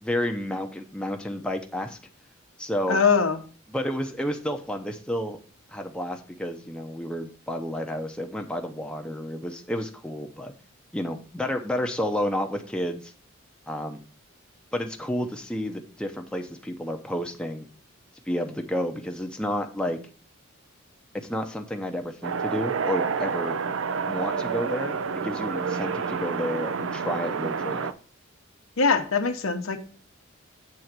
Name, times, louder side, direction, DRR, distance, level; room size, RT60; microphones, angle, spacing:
voice 1, 0.0-2.0 2.6-3.0 3.7-5.4 5.7-10.5 10.9-13.1 13.7-14.0 14.7-17.7 18.3-20.0 21.1-23.6 24.1-27.9, equal, 5° left, 4 dB, 0.6 m, -31 dB
voice 2, 2.9-3.4 28.8-29.8, left 5 dB, 80° left, 7 dB, 0.9 m, -22 dB
sound 1, 22.2-27.9, right 5 dB, 75° right, 0.5 m, -29 dB
7.9 x 3.8 x 5.9 m, 0.39 s
head